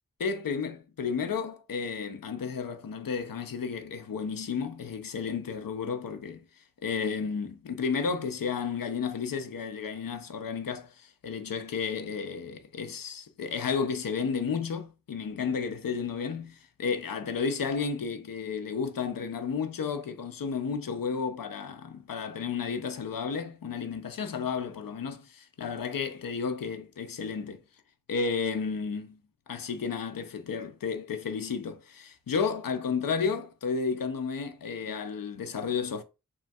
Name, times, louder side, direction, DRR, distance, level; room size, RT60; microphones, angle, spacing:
voice 1, 0.2-6.4 6.8-27.6 28.1-29.2 29.5-36.0, left 5 dB, 75° left, 0.5 m, -32 dB
3.0 x 2.3 x 2.6 m
wide cardioid pair, 40°, 34 cm